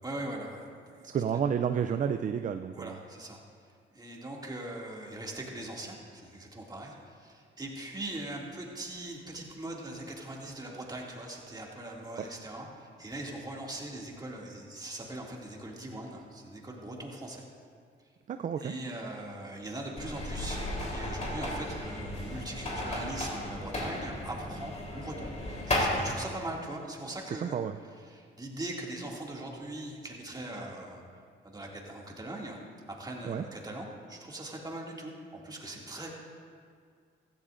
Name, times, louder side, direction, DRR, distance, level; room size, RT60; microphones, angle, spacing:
voice 1, 0.0-1.1 2.7-3.4 3.9-17.4 18.6-25.3 25.7-27.6 28.0-31.0 31.4-32.6 32.9-36.1, right 1 dB, 20° right, -2 dB, 2.3 m, -41 dB
voice 2, 1.0-3.0 18.3-18.7 27.3-27.8 33.2-33.4, right 7 dB, 40° right, 8 dB, 0.4 m, -31 dB
sound 1, 20.0-26.1, left 1 dB, 35° left, 3.6 m, -34 dB
16.0 x 14.0 x 2.5 m, 2.1 s
cardioid pair, 90°, 20 cm